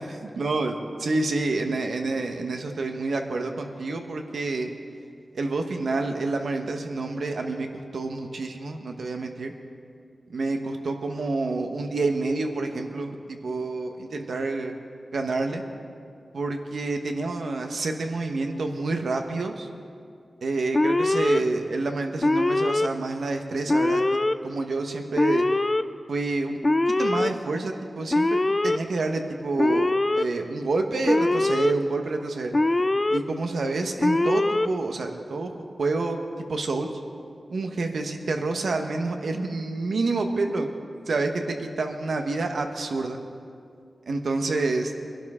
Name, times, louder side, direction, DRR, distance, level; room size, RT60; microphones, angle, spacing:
voice 1, 0.4-4.7 5.3-9.5 10.3-14.7 15.1-15.6 16.3-19.7 20.4-25.4 26.1-26.6 27.0-28.4 28.6-32.5 33.1-36.2 36.5-36.9 37.5-40.7 41.1-43.2 44.1-44.9, right 3 dB, 80° right, 4 dB, 1.1 m, -28 dB
Alarm, 20.7-21.4 22.2-22.9 23.7-24.3 25.2-25.8 26.6-27.3 28.1-28.8 29.6-30.2 31.0-31.7 32.5-33.2 34.0-34.7, left 2 dB, 30° left, 0.4 m, -22 dB
21.0 x 11.5 x 3.6 m, 2.3 s
wide cardioid pair, 75°, 0 cm